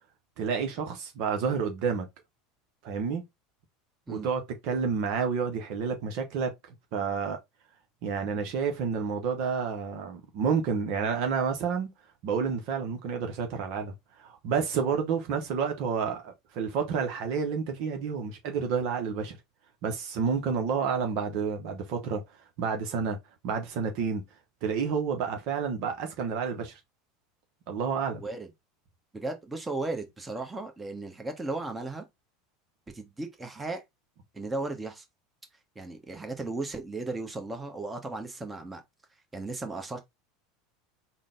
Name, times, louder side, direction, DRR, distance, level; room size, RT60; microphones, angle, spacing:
voice 1, 0.4-2.1 2.8-3.2 4.1-6.5 6.9-7.4 8.0-11.9 12.2-13.9 14.2-19.4 19.8-22.2 22.6-23.2 23.4-24.2 24.6-26.8 27.7-28.2, right 6 dB, 60° right, 0.8 m, -29 dB
voice 2, 28.2-28.5 29.1-32.0 32.9-33.8 34.3-35.0 35.7-38.8 39.3-40.0, right 2 dB, 15° right, 1.0 m, -35 dB
3.8 x 2.2 x 3.6 m
hypercardioid pair, 80°, 0 cm